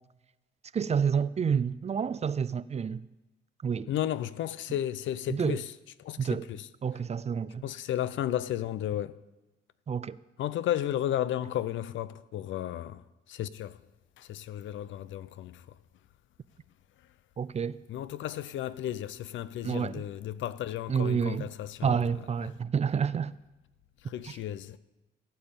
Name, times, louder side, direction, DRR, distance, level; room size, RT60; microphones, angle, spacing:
voice 1, 0.7-3.0 3.6-3.9 5.3-5.6 6.2-6.5 6.8-7.6 9.9-10.2 17.4-17.8 19.6-20.0 20.9-21.5 21.8-23.3 24.2-24.4, right 7 dB, 35° right, 0.5 m, -29 dB
voice 2, 3.9-5.7 6.0-6.7 7.6-9.2 10.4-13.0 13.3-13.8 14.2-15.6 17.9-22.0 24.1-24.8, left 11 dB, 75° left, 0.6 m, -33 dB
16.0 x 5.5 x 9.0 m
cardioid pair, 90°, 20 cm